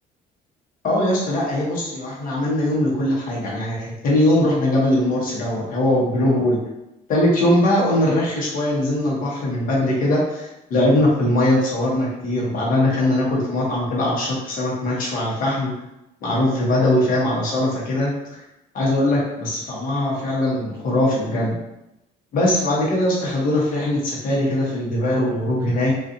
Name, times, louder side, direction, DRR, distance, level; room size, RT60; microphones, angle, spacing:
voice 1, 0.8-6.6 7.1-15.7 16.2-18.1 18.7-21.6 22.3-25.9, left 1 dB, 55° left, -4 dB, 0.9 m, -21 dB
2.5 x 2.4 x 2.6 m, 0.90 s
cardioid pair, 110°, 17 cm